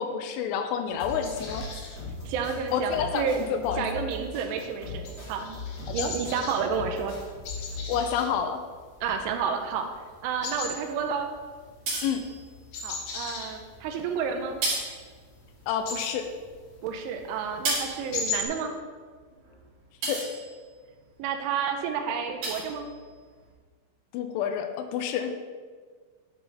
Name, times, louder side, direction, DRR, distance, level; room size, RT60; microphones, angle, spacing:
voice 1, 0.0-1.6 2.7-3.3 3.5-3.9 6.0-6.1 7.9-8.6 12.0-12.2 15.7-16.2 20.1-20.2 24.1-25.3, left 8 dB, 85° left, 6 dB, 3.1 m, -28 dB
sound 1, 0.9-8.3, left 2 dB, 40° left, 2.1 m, -39 dB
sound 2, 1.1-18.5, left 3 dB, 65° left, 2.9 m, -40 dB
voice 2, 2.3-3.5 3.8-5.6 5.9-7.1 9.0-9.9 10.2-11.3 12.8-14.6 16.8-18.7 21.2-22.9, right 6 dB, 80° right, 5 dB, 2.9 m, -30 dB
sound 3, 11.6-12.8 13.5-14.1 14.3-15.9 16.1-21.0 21.5-21.8 22.1-23.5, right 2 dB, 50° right, 3.3 m, -35 dB
11.0 x 4.4 x 3.9 m, 1.5 s
omnidirectional pair, 5.5 m